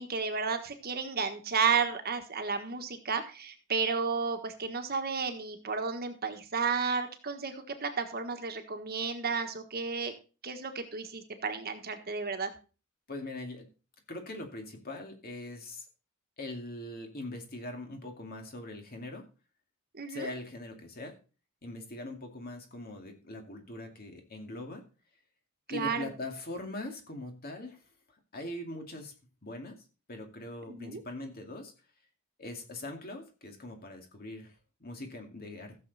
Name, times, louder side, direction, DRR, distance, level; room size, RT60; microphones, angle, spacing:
voice 1, 0.0-10.1 10.4-12.5 20.0-20.3 25.7-26.1 30.7-31.0, right 5 dB, 45° right, 6 dB, 1.4 m, -32 dB
voice 2, 13.1-13.7 14.1-15.9 16.4-19.3 20.1-21.2 21.6-24.8 25.7-27.8 28.3-29.1 29.4-31.7 32.4-35.8, left 1 dB, 45° left, 4 dB, 2.3 m, -42 dB
15.0 x 7.1 x 4.1 m, 0.35 s
head